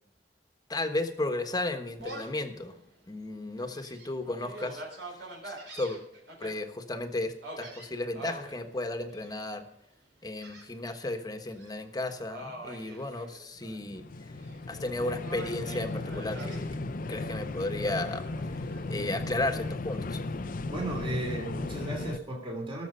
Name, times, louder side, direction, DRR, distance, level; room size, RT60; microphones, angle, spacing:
voice 1, 0.7-2.8 3.1-4.8 5.4-6.0 6.4-9.6 10.2-14.0 14.7-16.8 17.1-18.2 18.9-20.2, left 2 dB, 20° left, 7 dB, 1.3 m, -34 dB
Gull seagull, 2.0-2.4 2.9-3.0 3.6-6.5 7.4-8.6 9.1-9.6 10.4-11.1 11.4-11.7 12.2-13.8 14.1-14.9 15.2-16.6 17.8-18.8, right 2 dB, 70° right, 4.1 m, -44 dB
sound 1, 13.6-22.2, left 2 dB, 50° left, 0.6 m, -36 dB
voice 2, 20.7-22.8, right 1 dB, 30° right, 0 dB, 3.0 m, -35 dB
18.0 x 7.3 x 5.6 m, 0.75 s
head